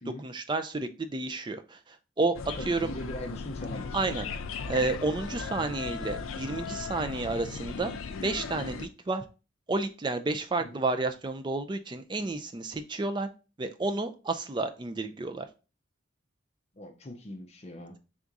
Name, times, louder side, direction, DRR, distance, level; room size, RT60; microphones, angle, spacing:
voice 1, 0.2-2.9 3.9-7.9 8.2-9.2 9.7-13.3 13.6-15.5, right 3 dB, 20° right, 0.3 m, -31 dB
sound 1, 2.3-8.9, left 5 dB, 90° left, 0.5 m, -37 dB
voice 2, 2.6-4.0 10.6-10.8 16.8-18.0, left 1 dB, 30° left, 0.5 m, -41 dB
3.6 x 2.6 x 4.6 m
head